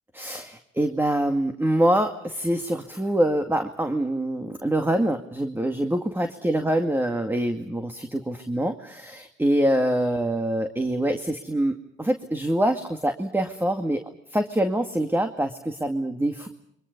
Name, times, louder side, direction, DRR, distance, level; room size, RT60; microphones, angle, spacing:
voice 1, 0.1-14.0 14.3-16.5, right 1 dB, 10° right, 6 dB, 2.2 m, -25 dB
29.0 x 24.5 x 5.4 m, 0.76 s
cardioid pair, 90°, 20 cm